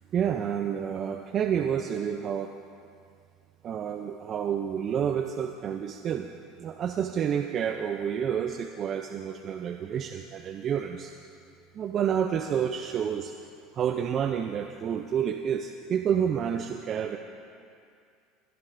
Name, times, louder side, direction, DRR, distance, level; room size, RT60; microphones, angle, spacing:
voice 1, 0.1-2.5 3.6-6.3 6.6-11.1 11.7-13.3 13.7-17.2, right 8 dB, 45° right, 6 dB, 0.5 m, -29 dB
22.0 x 11.0 x 2.6 m, 2.4 s
supercardioid pair, 95°, 0 cm